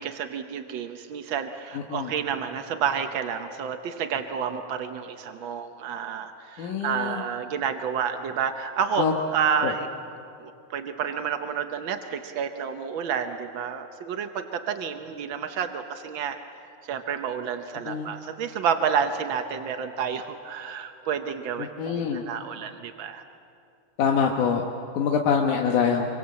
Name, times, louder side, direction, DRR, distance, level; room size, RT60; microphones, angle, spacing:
voice 1, 0.0-9.0 9.3-9.9 10.4-16.4 16.9-23.2, right 7 dB, 75° right, 6 dB, 1.1 m, -30 dB
voice 2, 1.7-2.1 6.6-7.2 9.0-9.1 9.6-9.7 17.9-18.1 21.6-22.2 24.0-24.6 24.9-26.1, left 6 dB, 90° left, 1 dB, 2.8 m, -25 dB
26.5 x 24.0 x 7.6 m, 2.5 s
omnidirectional pair, 3.5 m